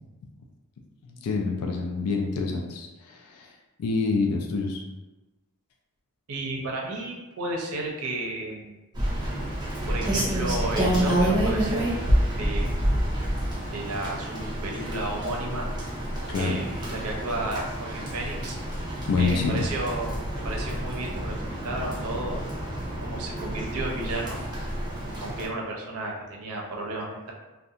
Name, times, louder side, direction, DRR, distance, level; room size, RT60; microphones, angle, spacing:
voice 1, 1.2-3.5 3.8-4.8 16.3-16.6 19.1-19.7, left 4 dB, 85° left, 2 dB, 0.3 m, -27 dB
voice 2, 6.3-8.8 9.9-12.0 12.3-12.7 13.7-15.7 16.3-18.6 19.2-22.4 23.0-24.4 25.2-27.3, right 2 dB, 80° right, -1 dB, 0.5 m, -33 dB
Rain, 8.9-25.5, right 1 dB, 20° right, 0.4 m, -28 dB
2.4 x 2.2 x 2.7 m, 1.1 s
head